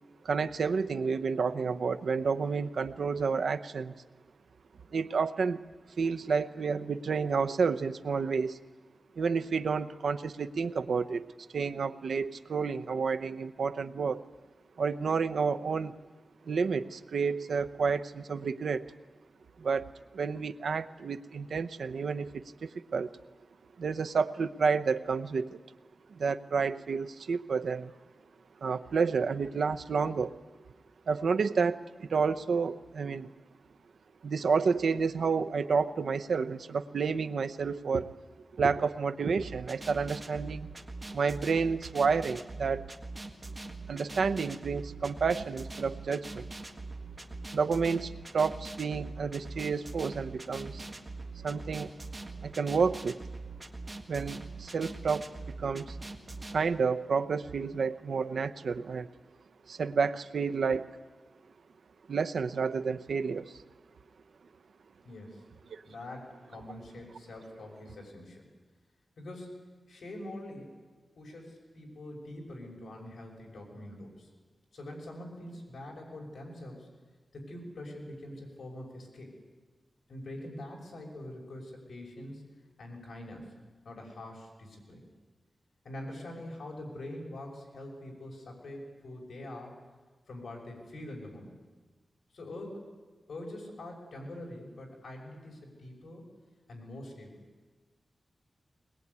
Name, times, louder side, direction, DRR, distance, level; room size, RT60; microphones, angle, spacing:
voice 1, 0.2-3.9 4.9-5.6 6.0-8.6 9.2-11.3 11.5-14.2 14.8-15.9 16.4-18.9 19.6-23.1 23.8-25.6 26.1-27.9 28.6-30.3 31.1-33.3 34.2-38.1 38.5-40.7 41.1-42.9 43.9-46.5 47.5-50.9 51.4-51.9 52.4-53.3 54.1-55.3 55.6-56.0 56.5-59.1 59.7-60.9 62.1-63.6 65.7-65.8, right 5 dB, 75° right, 10 dB, 0.8 m, -30 dB
sound 1, 39.4-56.6, right 2 dB, 20° right, 1.7 m, -43 dB
voice 2, 65.0-65.4 65.8-68.4 69.2-70.7 71.2-74.3 74.7-76.9 77.3-79.3 80.1-82.4 82.8-83.5 83.8-85.0 85.8-89.8 90.3-91.5 92.3-92.9 93.3-96.2 96.7-97.4, left 1 dB, 70° left, -1 dB, 6.0 m, -44 dB
21.0 x 21.0 x 9.6 m, 1.4 s
wide cardioid pair, 175°, 0 cm